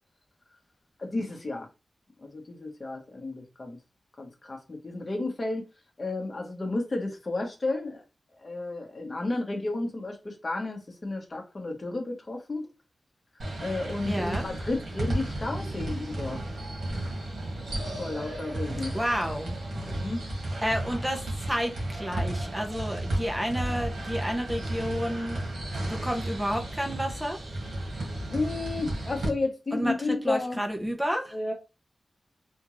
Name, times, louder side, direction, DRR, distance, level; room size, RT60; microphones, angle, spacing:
voice 1, 1.0-1.7 2.2-3.8 4.2-5.7 6.0-8.0 8.4-12.7 13.3-16.4 18.0-19.0 19.7-20.2 28.3-30.6 31.3-31.5, left 2 dB, 35° left, 1.1 m, -32 dB
sound 1, 13.4-29.3, right 1 dB, 85° right, 1.7 m, -33 dB
voice 2, 14.1-14.4 18.9-19.6 20.6-25.4 25.8-27.4 29.7-31.4, equal, 5° right, 0.8 m, -30 dB
3.6 x 2.6 x 3.1 m
wide cardioid pair, 140°, 0 cm